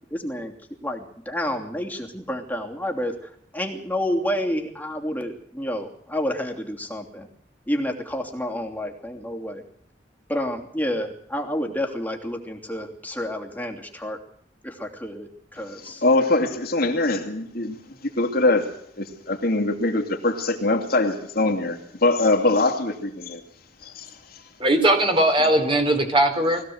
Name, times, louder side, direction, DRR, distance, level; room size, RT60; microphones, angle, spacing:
voice 1, 0.1-0.5 0.8-7.3 7.6-9.6 10.3-14.2 14.6-16.0 25.4-25.6, equal, 10° left, 3.0 m, -29 dB
voice 2, 16.0-17.8 18.2-23.4 23.8-24.1, left 2 dB, 55° left, 2.8 m, -22 dB
voice 3, 24.6-26.6, right 1 dB, 30° right, 4.1 m, -19 dB
21.5 x 16.0 x 8.0 m
head